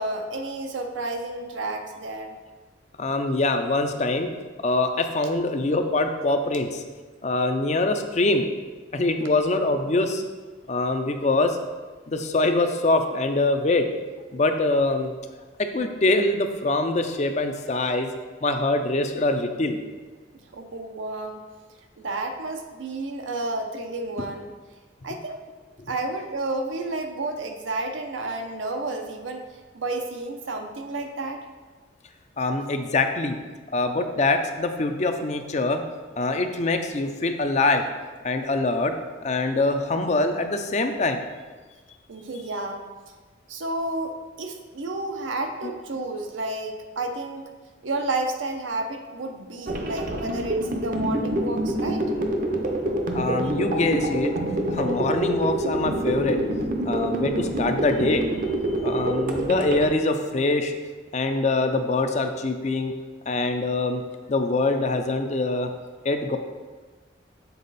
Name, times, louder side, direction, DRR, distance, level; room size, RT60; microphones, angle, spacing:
voice 1, 0.0-2.4 20.5-21.4 22.0-24.5 25.0-25.4 25.9-29.4 29.7-31.4 42.1-42.9 43.5-47.5 47.8-52.1, right 2 dB, 85° right, 4 dB, 0.7 m, -31 dB
voice 2, 3.0-4.3 4.6-6.8 7.2-8.5 8.9-10.3 10.7-11.6 12.1-13.9 14.3-15.1 15.7-18.1 18.4-19.8 32.4-33.4 33.7-35.8 36.2-37.9 38.2-38.9 39.2-41.2 45.6-45.7 53.1-54.3 54.7-56.4 56.9-58.3 58.8-60.8 61.1-62.9 63.3-64.0 64.3-65.7 66.0-66.4, left 2 dB, 35° left, 7 dB, 0.5 m, -24 dB
sound 1, 49.7-59.9, right 1 dB, 45° right, 0.6 m, -26 dB
6.9 x 4.1 x 4.1 m, 1.4 s
head